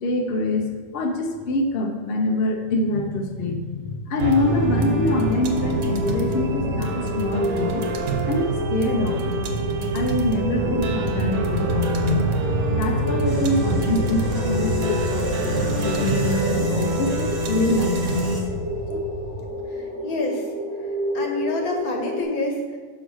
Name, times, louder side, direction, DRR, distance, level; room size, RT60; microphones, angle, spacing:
voice 1, 0.0-7.8 8.3-9.4 9.9-12.3 12.7-18.4 18.9-19.0, left 2 dB, 50° left, 3 dB, 0.7 m, -25 dB
sound 1, 4.2-19.5, right 2 dB, 65° right, 1.2 m, -26 dB
sound 2, 4.4-22.2, equal, 10° left, 0.7 m, -30 dB
sound 3, 13.3-18.4, right 1 dB, 15° right, 1.6 m, -38 dB
voice 2, 19.7-20.5 21.1-22.8, left 2 dB, 65° left, 1 dB, 1.6 m, -27 dB
5.9 x 4.7 x 6.2 m, 1.5 s
omnidirectional pair, 1.7 m